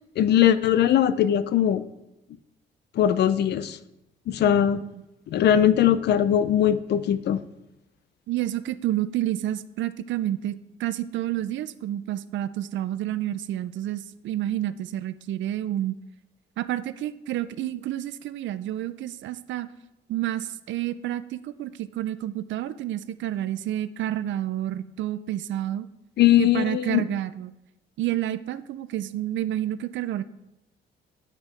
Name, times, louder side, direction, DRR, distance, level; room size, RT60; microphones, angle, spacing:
voice 1, 0.2-1.8 3.0-3.8 4.3-4.8 5.3-7.4 26.2-27.0, left 10 dB, 60° left, 14 dB, 0.4 m, -20 dB
voice 2, 4.5-5.0 8.3-16.0 16.6-19.7 20.1-25.9 26.4-27.5 28.0-30.2, right 13 dB, 70° right, 14 dB, 0.4 m, -29 dB
7.5 x 5.1 x 3.1 m, 0.92 s
cardioid pair, 90°, 20 cm